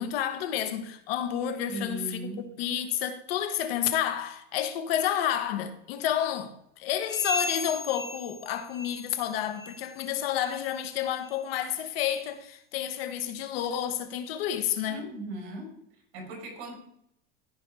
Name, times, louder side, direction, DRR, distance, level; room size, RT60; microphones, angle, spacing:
voice 1, 0.0-2.3 2.6-15.0, left 10 dB, 80° left, 1.2 m, -30 dB
voice 2, 1.7-2.5 14.9-15.8 16.1-16.7, right 1 dB, 60° right, 3.7 m, -38 dB
sound 1, 7.0-9.2 9.5-9.9 10.3-10.6 11.2-11.4 12.0-12.1 12.9-13.0, left 2 dB, 15° left, 2.8 m, -36 dB
14.0 x 5.0 x 3.4 m
supercardioid pair, 150°, 30 cm